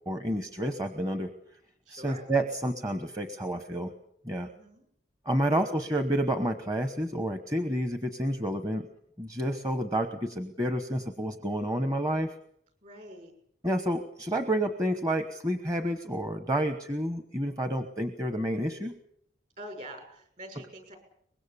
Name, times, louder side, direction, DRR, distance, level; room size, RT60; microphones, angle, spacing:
voice 1, 0.1-1.3 1.9-3.9 4.2-4.5 5.2-8.9 9.2-12.3 13.6-19.0, right 1 dB, 20° right, 8 dB, 1.1 m, -29 dB
voice 2, 1.9-2.2 4.5-4.9 5.5-5.9 12.8-13.3 19.6-21.0, right 1 dB, 40° right, 5 dB, 6.0 m, -45 dB
24.0 x 21.5 x 6.9 m, 0.69 s
head